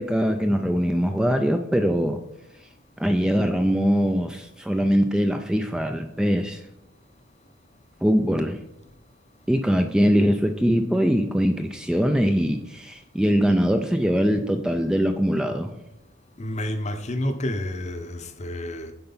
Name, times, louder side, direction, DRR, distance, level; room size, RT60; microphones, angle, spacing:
voice 1, 0.0-2.2 3.0-6.6 8.0-8.6 9.5-15.7, equal, 5° right, 0.3 m, -22 dB
voice 2, 16.4-18.9, left 1 dB, 35° left, 0.7 m, -29 dB
7.9 x 4.4 x 5.5 m
head